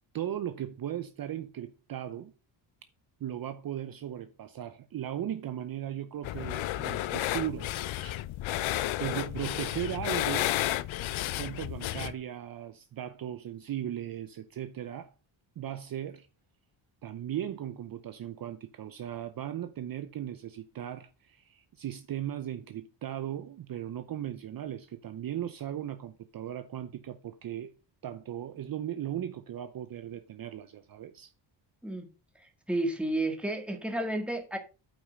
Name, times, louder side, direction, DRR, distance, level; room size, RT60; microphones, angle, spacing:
voice 1, 0.1-2.3 3.2-7.7 8.0-8.1 9.0-10.5 11.3-15.1 15.6-16.3 17.0-27.7 28.0-31.3, right 11 dB, 45° right, 0.8 m, -37 dB
sound 1, 6.2-12.1, left 14 dB, 75° left, 0.7 m, -32 dB
voice 2, 32.7-34.6, right 1 dB, ahead, 1.9 m, -31 dB
8.6 x 5.7 x 5.3 m
cardioid pair, 140°, 48 cm